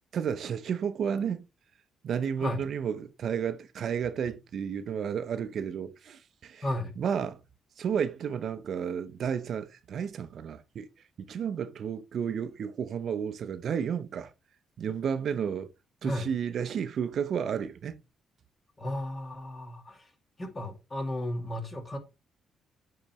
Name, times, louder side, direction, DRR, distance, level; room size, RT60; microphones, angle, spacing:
voice 1, 0.1-1.4 2.0-6.6 7.0-7.4 7.8-10.9 11.2-14.3 14.8-15.7 16.0-18.0, right 7 dB, 60° right, 0.6 m, -32 dB
voice 2, 6.6-6.9 16.0-16.3 18.8-20.1 20.4-22.0, left 1 dB, 30° left, 2.1 m, -34 dB
8.3 x 3.9 x 3.1 m
cardioid pair, 90°, 0 cm